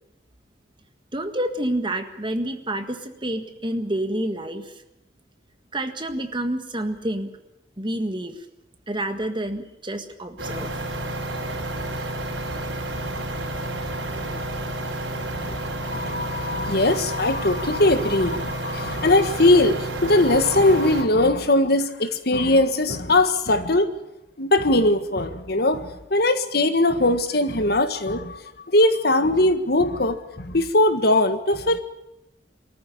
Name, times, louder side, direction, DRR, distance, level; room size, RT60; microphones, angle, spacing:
voice 1, 1.1-4.7 5.7-7.3 7.8-8.4 8.9-10.8, right 1 dB, 25° right, 7 dB, 1.7 m, -28 dB
sound 1, 10.4-21.0, right 1 dB, 85° right, 4.8 m, -30 dB
voice 2, 15.3-23.9 24.4-28.4 28.7-31.8, left 2 dB, 60° left, 10 dB, 1.6 m, -20 dB
23.5 x 14.0 x 10.0 m, 0.89 s
head